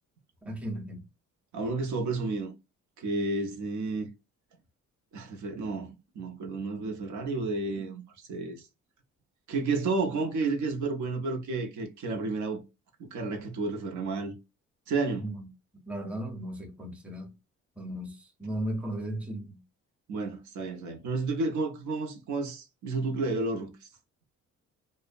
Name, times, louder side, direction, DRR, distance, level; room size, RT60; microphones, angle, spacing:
voice 1, 0.4-1.0 15.2-15.5 15.9-17.3 17.8-19.6, right 1 dB, 5° right, 0.7 m, -36 dB
voice 2, 1.5-2.5 3.0-4.1 5.1-8.7 9.5-12.6 13.0-14.3 14.9-15.3 20.1-23.7, right 3 dB, 75° right, 0.7 m, -31 dB
2.7 x 2.0 x 2.5 m
cardioid pair, 90°, 30 cm